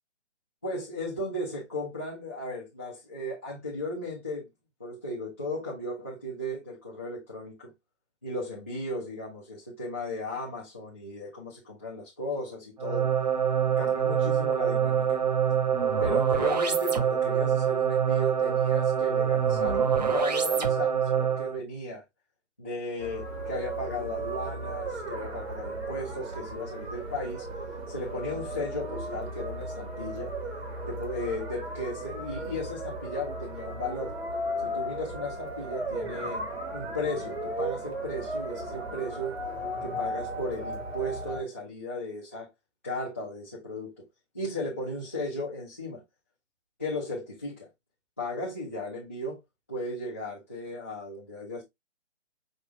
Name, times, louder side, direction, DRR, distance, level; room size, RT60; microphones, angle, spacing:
voice 1, 0.6-4.5 4.8-7.7 8.2-13.1 13.8-15.3 16.0-22.0 22.6-27.5 27.9-30.3 30.9-34.1 34.6-36.5 36.7-39.4 39.8-42.5 42.8-44.0 44.3-46.0 46.8-47.7 48.2-49.4 49.7-51.6, left 1 dB, 10° left, 0.5 m, -35 dB
sound 1, 12.8-21.6, right 7 dB, 35° right, 0.6 m, -25 dB
sound 2, 23.0-41.4, right 1 dB, 60° right, 1.8 m, -36 dB
6.2 x 2.4 x 3.4 m
figure-of-eight pair, 145°, 36 cm